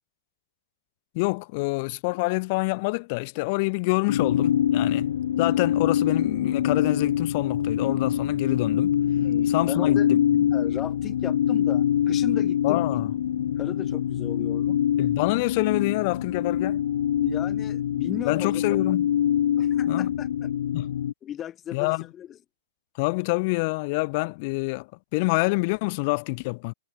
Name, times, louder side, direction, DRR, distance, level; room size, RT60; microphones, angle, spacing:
voice 1, 1.1-5.1 5.4-9.0 9.5-10.4 12.6-13.1 15.0-16.8 18.3-19.1 19.9-20.1 20.7-20.9 21.7-22.1 23.0-26.7, left 27 dB, 45° left, 1.4 m, -26 dB
sound 1, 4.1-21.1, left 10 dB, 65° left, 1.1 m, -24 dB
voice 2, 9.2-10.1 10.5-12.8 13.6-14.8 17.2-19.0 19.6-20.5 21.2-22.4, left 10 dB, 25° left, 1.9 m, -36 dB
figure-of-eight pair, 110°, 0 cm